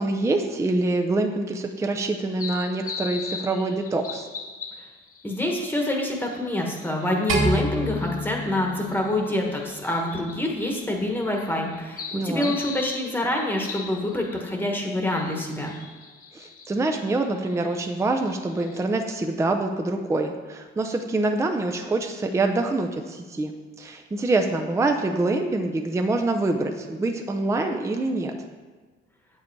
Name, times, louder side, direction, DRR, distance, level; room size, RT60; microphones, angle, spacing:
voice 1, 0.0-4.3 12.1-12.5 16.3-28.4, right 2 dB, 15° right, 5 dB, 0.5 m, -25 dB
sound 1, 2.3-18.9, left 5 dB, 45° left, 1.2 m, -41 dB
voice 2, 5.2-15.7, left 1 dB, 10° left, 0 dB, 1.2 m, -26 dB
sound 2, 7.3-9.7, right 1 dB, 75° right, 1.7 m, -27 dB
8.4 x 7.5 x 4.6 m, 1.4 s
cardioid pair, 145°, 21 cm